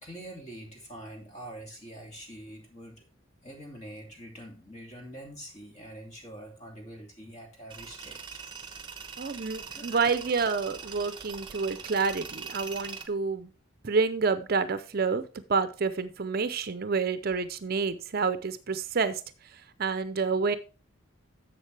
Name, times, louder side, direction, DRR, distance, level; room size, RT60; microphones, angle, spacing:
voice 1, 0.0-3.0 3.4-8.4 9.7-10.1, right 1 dB, 30° left, 0 dB, 2.8 m, -45 dB
Tools, 7.7-13.1, right 5 dB, 25° right, 1.0 m, -42 dB
voice 2, 9.2-13.5 13.8-20.6, right 4 dB, 45° right, 12 dB, 0.5 m, -29 dB
11.0 x 7.4 x 3.3 m, 0.35 s
head